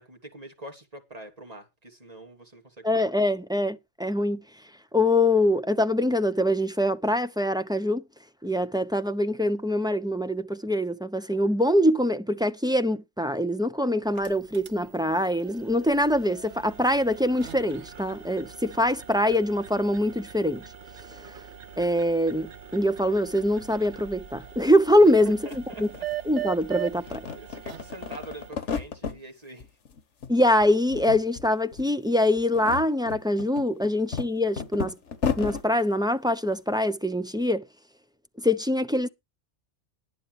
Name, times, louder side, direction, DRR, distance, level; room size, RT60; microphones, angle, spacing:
voice 1, 0.0-3.0 25.0-26.1 27.0-29.7, right 2 dB, 35° right, 3.2 m, -44 dB
voice 2, 2.8-4.4 4.9-8.0 8.4-20.6 21.8-25.4 25.8-25.9 26.3-27.2 30.3-34.9 35.4-37.6 38.4-39.1, left 1 dB, 5° right, 0.7 m, -24 dB
sound 1, 14.0-28.5, right 11 dB, 85° right, 1.3 m, -41 dB
sound 2, 25.2-25.3 25.5-26.6 27.0-29.2 29.6-30.3 30.6-31.5 31.7-31.9 32.4-35.6, left 6 dB, 90° left, 1.5 m, -33 dB
19.5 x 9.6 x 3.3 m
omnidirectional pair, 1.2 m